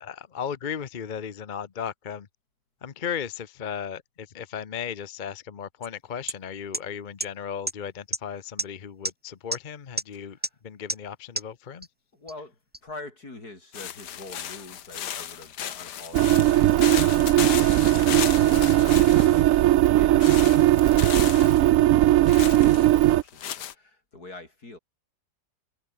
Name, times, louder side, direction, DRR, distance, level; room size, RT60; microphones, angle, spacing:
voice 1, 0.0-2.3 2.8-10.4 10.6-11.9, left 8 dB, 40° left, 0.8 m, -36 dB
sound 1, 5.8-5.9 6.3-6.4 6.7-6.8 7.2-7.3 7.7-7.8 8.1-8.2 8.6-8.7 9.1-9.2 9.5-9.6 10.0-10.1 10.4-10.5 10.9-11.0 11.4-11.5 11.8-11.9 12.3-12.4 12.7-12.8, right 1 dB, 5° right, 1.3 m, -27 dB
voice 2, 10.1-10.6 12.1-24.8, left 2 dB, 65° left, 6.4 m, -46 dB
sound 2, 13.7-19.6 20.2-21.6 22.3-23.7, left 10 dB, 90° left, 1.7 m, -34 dB
sound 3, 16.1-23.2, right 14 dB, 70° right, 0.8 m, -19 dB
omnidirectional pair, 1.7 m